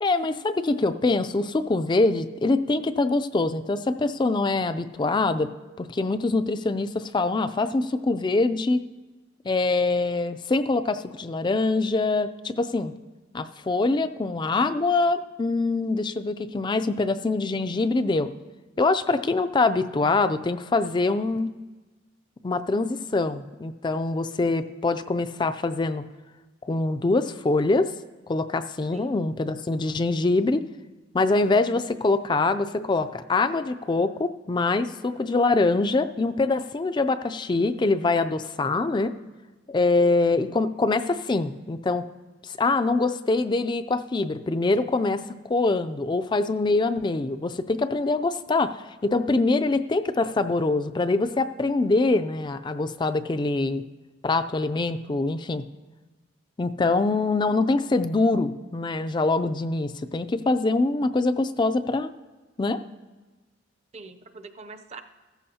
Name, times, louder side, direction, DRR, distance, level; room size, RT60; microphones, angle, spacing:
voice 1, 0.0-5.5 5.8-8.8 9.4-12.9 13.3-18.3 18.8-21.5 22.4-26.0 26.6-27.9 28.3-30.6 31.1-39.1 39.7-42.0 42.4-53.8 54.2-55.6 56.6-62.1 62.6-62.8, left 3 dB, 25° left, 10 dB, 0.3 m, -24 dB
voice 2, 28.9-29.3 63.9-65.0, right 3 dB, 35° right, 8 dB, 0.6 m, -44 dB
15.5 x 14.0 x 2.8 m, 1.2 s
head